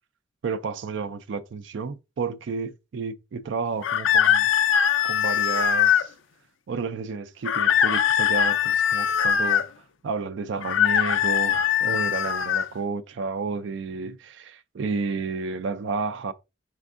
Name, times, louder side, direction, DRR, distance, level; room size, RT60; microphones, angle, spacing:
voice 1, 0.4-4.5 5.0-6.1 6.7-9.7 10.0-16.3, right 4 dB, 70° right, 0.4 m, -31 dB
sound 1, 3.8-6.1 7.5-9.7 10.6-12.7, left 9 dB, 85° left, 0.4 m, -21 dB
4.4 x 3.4 x 2.4 m
head